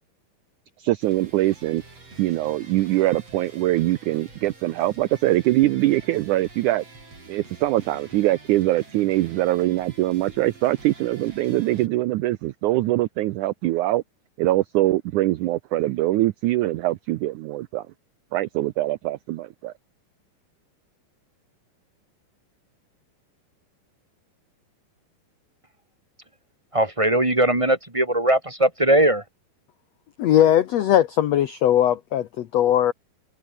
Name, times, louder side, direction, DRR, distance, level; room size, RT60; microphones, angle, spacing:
voice 1, 0.8-1.8 2.2-6.8 7.3-14.0 14.4-17.8 18.3-19.7, right 16 dB, 85° right, 1.7 m, -23 dB
sound 1, 1.0-11.9, right 3 dB, 40° right, 8.4 m, -47 dB
voice 2, 26.7-29.2, right 1 dB, 15° right, 1.0 m, -20 dB
voice 3, 30.2-32.9, left 11 dB, 75° left, 1.5 m, -19 dB
omnidirectional pair, 4.4 m